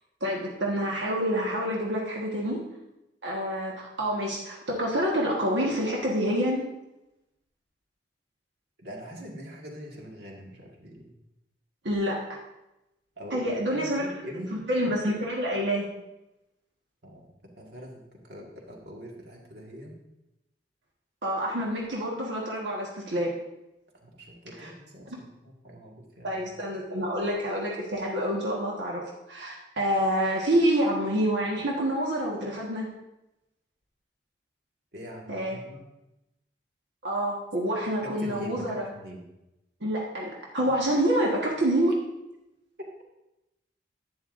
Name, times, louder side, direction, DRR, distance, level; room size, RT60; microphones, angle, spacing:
voice 1, 0.2-2.6 3.2-6.6 11.8-12.2 13.3-14.2 14.5-15.9 21.2-23.3 24.6-24.7 25.1-25.2 26.2-29.0 29.3-32.9 35.3-35.6 37.0-38.9 39.8-41.9, equal, 85° right, -3 dB, 1.5 m, -27 dB
voice 2, 8.8-11.1 13.2-14.5 17.0-17.3 17.6-19.9 24.0-26.4 34.9-35.8 38.0-39.2, equal, 65° right, -1 dB, 1.8 m, -43 dB
11.0 x 9.5 x 2.6 m, 0.93 s
head